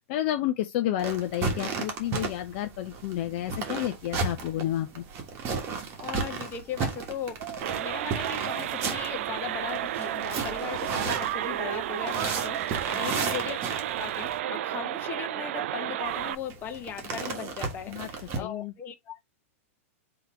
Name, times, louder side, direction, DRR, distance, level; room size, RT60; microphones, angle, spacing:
voice 1, 0.1-5.0 12.9-13.2 17.9-18.1 18.4-18.7, left 13 dB, 50° left, 0.6 m, -30 dB
sound 1, 1.0-14.4 16.1-18.4, right 5 dB, 35° right, 1.3 m, -34 dB
voice 2, 6.0-7.4 7.8-13.6 13.9-19.2, left 8 dB, 25° left, 0.9 m, -38 dB
sound 2, 7.4-9.2 9.7-11.6 12.1-14.0, right 9 dB, 80° right, 0.9 m, -41 dB
sound 3, 7.6-16.4, right 12 dB, 65° right, 0.4 m, -32 dB
3.8 x 2.9 x 4.4 m
hypercardioid pair, 140°, 7 cm